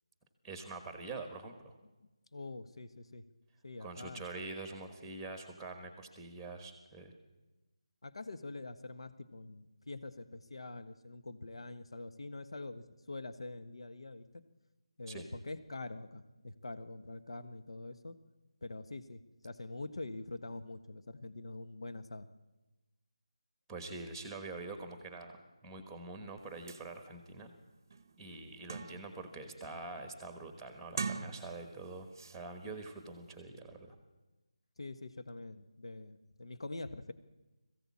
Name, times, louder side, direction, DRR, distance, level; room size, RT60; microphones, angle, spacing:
voice 1, 0.4-1.7 3.8-7.1 15.1-15.3 23.7-27.5 28.2-33.9, right 3 dB, ahead, 7 dB, 1.3 m, -45 dB
voice 2, 2.3-3.2 3.6-4.2 8.0-14.2 15.0-18.1 18.6-22.3 34.8-37.1, left 2 dB, 60° left, 10 dB, 1.5 m, -45 dB
sound 1, 26.4-26.5 26.7-26.8 27.4-27.5 27.9-29.2 29.6-30.0 30.8-31.8 32.1-32.4, right 4 dB, 30° right, 0.9 m, -42 dB
21.0 x 15.5 x 8.6 m, 1.1 s
figure-of-eight pair, 175°, 3 cm